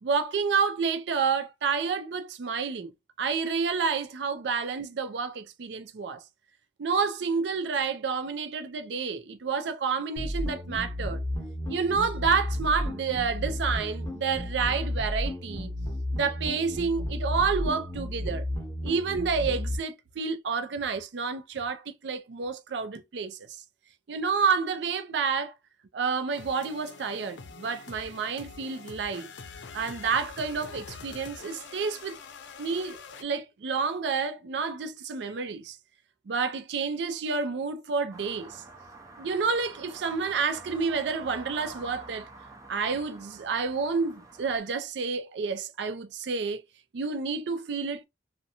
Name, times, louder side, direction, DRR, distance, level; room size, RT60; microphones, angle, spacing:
voice 1, 0.0-2.9 3.2-6.2 6.8-11.2 11.7-15.7 16.1-18.5 18.8-23.6 24.1-25.5 25.9-29.3 29.7-32.2 32.6-35.8 36.3-38.6 39.2-42.3 42.7-46.6 46.9-48.0, right 5 dB, 75° right, 0.4 m, -29 dB
sound 1, 10.2-19.8, left 1 dB, 20° left, 0.7 m, -33 dB
sound 2, 26.3-33.2, left 5 dB, 85° left, 0.5 m, -45 dB
sound 3, 38.1-44.6, right 3 dB, 20° right, 0.5 m, -47 dB
2.6 x 2.1 x 2.7 m
head